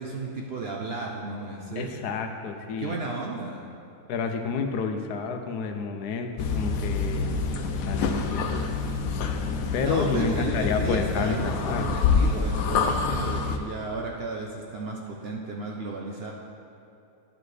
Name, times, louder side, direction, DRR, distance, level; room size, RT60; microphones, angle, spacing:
voice 1, 0.0-1.9 2.8-3.7 9.7-16.3, right 3 dB, 60° right, -1 dB, 0.7 m, -33 dB
voice 2, 1.8-3.0 4.1-7.3 7.8-8.6 9.7-11.9, left 5 dB, 90° left, 5 dB, 1.2 m, -29 dB
sound 1, 6.4-13.6, left 4 dB, 70° left, 1.0 m, -27 dB
10.5 x 7.0 x 3.2 m, 2.8 s
omnidirectional pair, 1.7 m